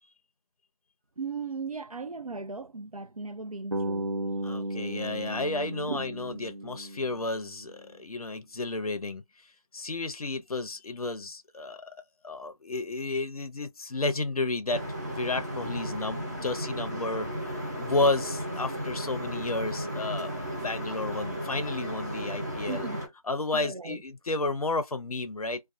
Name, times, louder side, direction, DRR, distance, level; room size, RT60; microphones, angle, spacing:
voice 1, 1.2-4.1 5.9-6.0 22.7-23.0 23.5-24.0, right 4 dB, 75° right, 0.6 m, -37 dB
Bass guitar, 3.7-7.8, right 1 dB, 55° right, 0.9 m, -35 dB
voice 2, 4.4-9.2 9.7-12.0 12.2-20.3 20.6-22.9 23.3-25.6, left 2 dB, 80° left, 0.5 m, -32 dB
sound 1, 14.7-23.1, equal, 30° right, 0.8 m, -34 dB
2.4 x 2.3 x 2.4 m
figure-of-eight pair, 175°, 19 cm